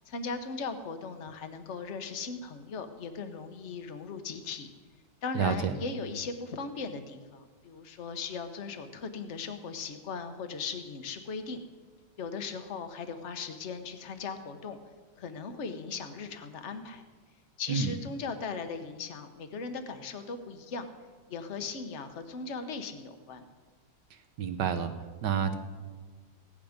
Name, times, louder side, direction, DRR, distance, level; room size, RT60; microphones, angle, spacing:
voice 1, 0.1-4.7 5.2-11.6 12.2-14.8 15.2-17.0 17.6-20.9 21.3-23.4, left 4 dB, 45° left, 8 dB, 1.1 m, -38 dB
voice 2, 5.3-5.7 17.7-17.9 24.4-24.9 25.2-25.5, right 7 dB, 65° right, 9 dB, 1.4 m, -28 dB
16.5 x 10.5 x 5.1 m, 1.4 s
omnidirectional pair, 2.2 m